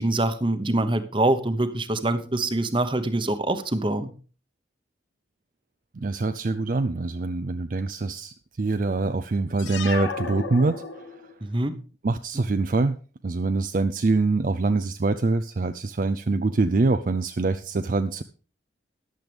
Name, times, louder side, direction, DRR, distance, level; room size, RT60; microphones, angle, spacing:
voice 1, 0.0-4.1 11.4-11.7, right 2 dB, 25° right, 9 dB, 1.0 m, -24 dB
voice 2, 6.0-10.8 12.0-13.0 13.2-18.2, right 3 dB, 45° right, 10 dB, 0.5 m, -24 dB
sound 1, 9.6-11.4, left 4 dB, 85° left, 1.4 m, -33 dB
14.0 x 11.0 x 3.4 m, 0.37 s
head